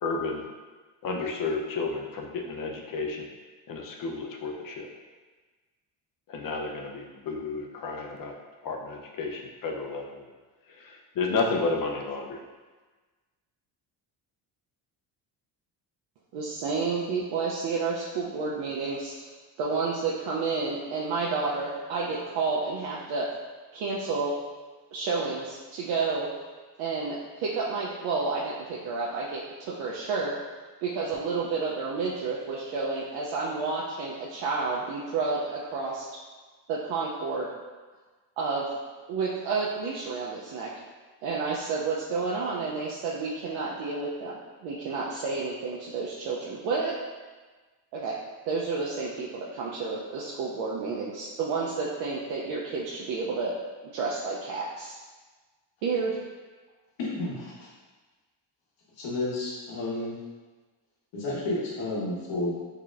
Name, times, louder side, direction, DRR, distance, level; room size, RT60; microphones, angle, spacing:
voice 1, 0.0-0.4 1.0-3.3 3.7-4.9 6.3-8.3 8.6-10.2 10.8-12.4, left 3 dB, 50° left, 1 dB, 0.6 m, -31 dB
voice 2, 16.3-19.3 19.6-23.3 23.7-24.4 24.9-26.3 26.8-30.3 30.8-36.1 36.7-37.5 38.4-38.7 39.1-40.7 41.2-44.3 44.6-46.9 47.9-48.1 48.5-53.5 53.9-54.9 55.8-56.2, right 4 dB, 85° right, -5 dB, 0.7 m, -30 dB
voice 3, 57.0-57.7 59.0-60.2 61.1-62.6, left 2 dB, 85° left, -5 dB, 1.3 m, -31 dB
4.8 x 2.8 x 2.4 m, 1.3 s
cardioid pair, 110°, 43 cm